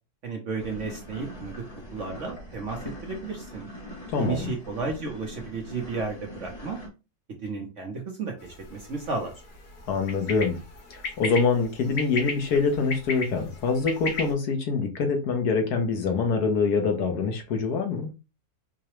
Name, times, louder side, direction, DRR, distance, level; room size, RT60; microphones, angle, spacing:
voice 1, 0.2-1.6 1.9-3.7 4.2-6.8 7.4-9.3, right 4 dB, 55° right, 1.0 m, -33 dB
sound 1, 0.6-6.9, equal, 25° left, 0.9 m, -42 dB
voice 2, 4.1-4.5 9.9-10.6 10.9-18.1, left 4 dB, 65° left, 1.3 m, -25 dB
sound 2, 8.4-14.3, left 4 dB, 80° left, 2.0 m, -36 dB
4.8 x 2.2 x 3.0 m
omnidirectional pair, 1.9 m